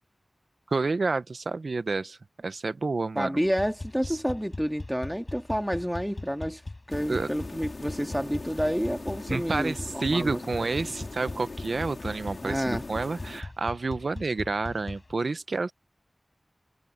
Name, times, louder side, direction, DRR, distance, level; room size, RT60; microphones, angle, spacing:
voice 1, 0.7-3.4 4.0-4.2 7.1-7.3 9.3-15.7, right 3 dB, 80° right, 0.8 m, -29 dB
voice 2, 3.2-6.6 6.9-10.7 12.4-12.8, equal, ahead, 2.0 m, -29 dB
sound 1, 3.4-15.1, left 2 dB, 40° left, 5.4 m, -40 dB
sound 2, 6.9-13.4, left 3 dB, 70° left, 2.5 m, -41 dB
wide cardioid pair, 75°, 0 cm